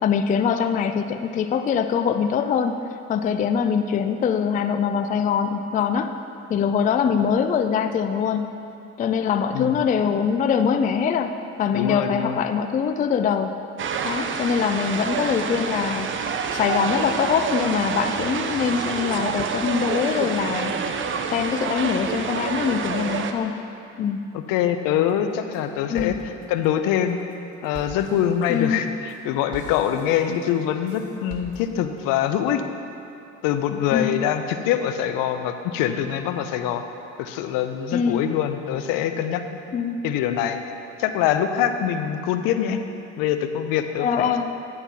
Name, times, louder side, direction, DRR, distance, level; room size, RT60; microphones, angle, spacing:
voice 1, 0.0-2.8 3.1-6.1 6.5-8.5 9.0-11.3 11.6-13.5 14.0-16.1 16.5-21.0 21.3-23.6 24.0-24.2 25.9-26.2 28.5-28.8 33.9-34.2 37.9-38.2 39.7-40.0 44.0-44.5, left 7 dB, 25° left, 8 dB, 0.4 m, -23 dB
voice 2, 11.7-12.4 24.3-27.2 27.6-32.6 33.4-36.8 37.2-39.4 40.0-40.6 41.0-42.8 43.2-44.4, left 10 dB, 65° left, 8 dB, 0.6 m, -24 dB
sound 1, 13.8-23.3, right 6 dB, 35° right, 0.6 m, -27 dB
sound 2, 25.1-25.6 26.0-32.0, right 2 dB, 55° right, 1.2 m, -44 dB
10.0 x 4.4 x 5.7 m, 2.7 s
hypercardioid pair, 65°, 36 cm